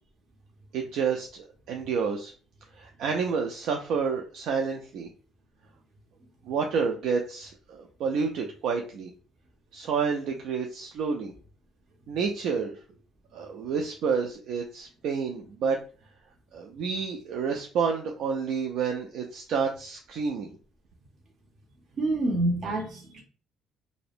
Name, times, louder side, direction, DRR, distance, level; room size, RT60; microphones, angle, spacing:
voice 1, 0.7-2.3 2.7-5.1 6.4-9.1 9.7-11.3 12.1-12.8 13.3-15.8 16.5-20.6, right 5 dB, 75° right, 0.3 m, -29 dB
voice 2, 22.0-23.2, right 2 dB, 55° right, 0.7 m, -27 dB
2.6 x 2.1 x 2.4 m
cardioid pair, 100°, 0 cm